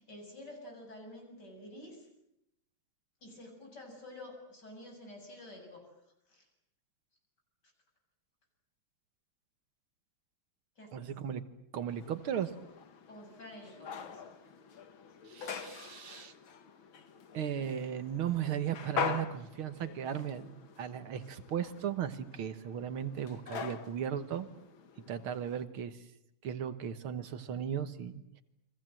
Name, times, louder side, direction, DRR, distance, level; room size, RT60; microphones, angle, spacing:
voice 1, 0.0-2.1 3.2-5.9 6.3-6.5 10.8-11.0 13.1-14.4, left 1 dB, 50° left, 3 dB, 7.9 m, -49 dB
voice 2, 10.9-11.4 11.7-12.5 15.3-16.3 17.3-24.5 25.1-26.1 26.4-28.4, right 9 dB, 70° right, 11 dB, 2.1 m, -36 dB
sound 1, 11.9-25.6, left 6 dB, 65° left, 2.4 m, -43 dB
30.0 x 24.0 x 7.7 m, 0.80 s
omnidirectional pair, 2.4 m